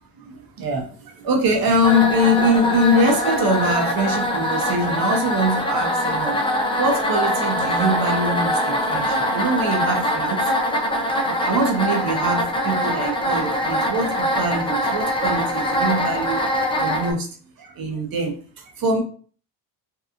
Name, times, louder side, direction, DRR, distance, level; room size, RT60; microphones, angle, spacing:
voice 1, 0.2-6.4 6.8-10.4 11.2-16.4 16.8-17.3 17.6-19.0, equal, 45° right, 3 dB, 0.9 m, -23 dB
sound 1, 1.8-17.1, equal, 10° left, 0.5 m, -23 dB
2.7 x 2.3 x 2.4 m, 0.42 s
cardioid pair, 85°, 49 cm